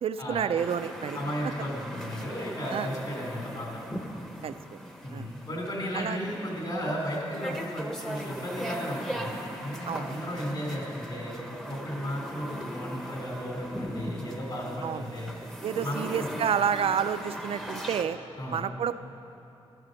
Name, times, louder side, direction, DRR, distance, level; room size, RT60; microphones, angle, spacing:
voice 1, 0.0-1.2 2.7-2.9 4.4-4.8 5.1-5.3 5.9-6.2 9.9-10.1 14.8-15.0 15.6-18.2 18.5-18.9, right 8 dB, 65° right, 12 dB, 0.4 m, -29 dB
sound 1, 0.6-18.0, equal, 5° left, 0.8 m, -39 dB
voice 2, 1.1-3.8 5.0-9.3 9.6-11.4 11.7-15.3 15.8-16.4 18.4-18.6, equal, 45° left, -2 dB, 3.3 m, -34 dB
13.0 x 11.0 x 6.5 m, 3.0 s
wide cardioid pair, 165°, 11 cm